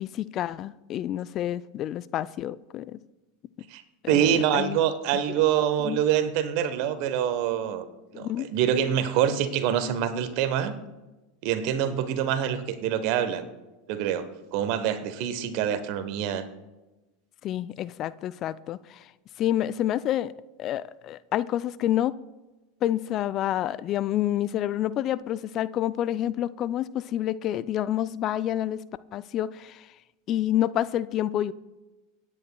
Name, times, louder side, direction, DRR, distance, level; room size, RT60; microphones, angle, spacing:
voice 1, 0.0-3.0 4.0-4.8 5.8-6.0 8.1-8.5 17.4-19.1 19.4-20.3 20.6-22.1 22.8-28.8 29.1-29.9 30.3-31.5, left 12 dB, 40° left, 0.4 m, -28 dB
voice 2, 4.1-7.8 8.1-10.7 11.4-13.5 13.9-14.2 14.5-16.5, right 9 dB, 55° right, 1.0 m, -25 dB
25.0 x 9.8 x 2.3 m
hypercardioid pair, 85°, 0 cm